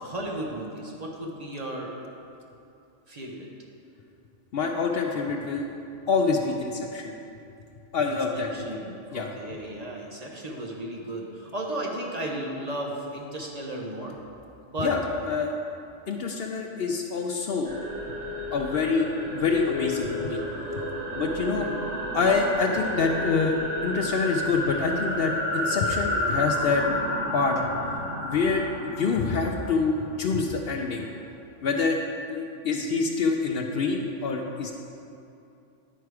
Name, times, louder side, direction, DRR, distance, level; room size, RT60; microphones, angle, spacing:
voice 1, 0.0-1.9 3.1-3.5 8.0-14.2 14.7-14.9 21.5-21.7, right 1 dB, 35° right, -2 dB, 0.9 m, -35 dB
voice 2, 4.5-5.7 6.1-7.1 7.9-8.8 9.1-9.3 14.8-15.5 16.1-17.8 18.5-20.4 21.1-21.7 22.1-23.6 23.8-26.8 27.3-27.6 28.2-31.1 31.6-32.0 32.3-34.7, left 4 dB, 65° left, 2 dB, 0.7 m, -26 dB
sound 1, 17.6-30.4, left 1 dB, 85° right, 1.6 m, -31 dB
10.0 x 4.6 x 4.7 m, 2.6 s
omnidirectional pair, 1.2 m